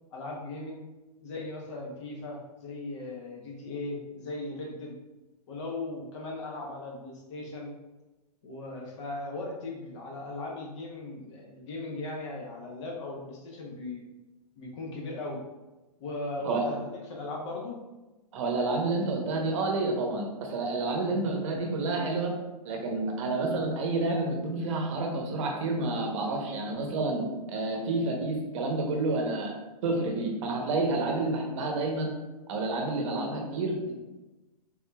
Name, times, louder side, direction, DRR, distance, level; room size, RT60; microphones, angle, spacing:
voice 1, 0.1-0.8 1.2-4.9 5.5-7.7 8.4-14.0 14.6-15.4 16.0-17.8 21.1-21.2, left 2 dB, 45° left, -1 dB, 0.9 m, -38 dB
voice 2, 18.3-22.3 22.6-27.2 27.5-29.5 29.8-32.1 32.5-34.0, right 2 dB, 50° right, 1 dB, 0.8 m, -29 dB
3.7 x 2.8 x 2.2 m, 1.1 s
hypercardioid pair, 150°, 20 cm